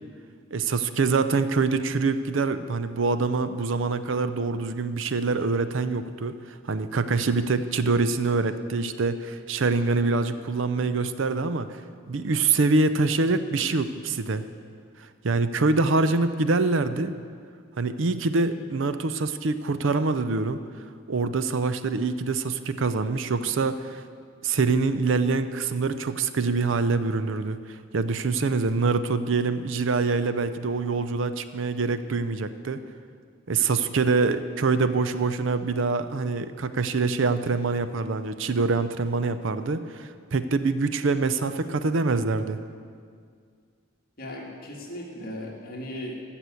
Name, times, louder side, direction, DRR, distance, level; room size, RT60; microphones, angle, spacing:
voice 1, 0.5-11.7 12.1-14.4 15.0-17.1 17.8-20.6 21.1-24.0 24.4-32.8 33.5-42.6, right 3 dB, 65° right, 11 dB, 0.6 m, -25 dB
voice 2, 44.2-46.2, left 1 dB, 45° left, -2 dB, 1.9 m, -37 dB
14.5 x 6.0 x 8.2 m, 2.1 s
head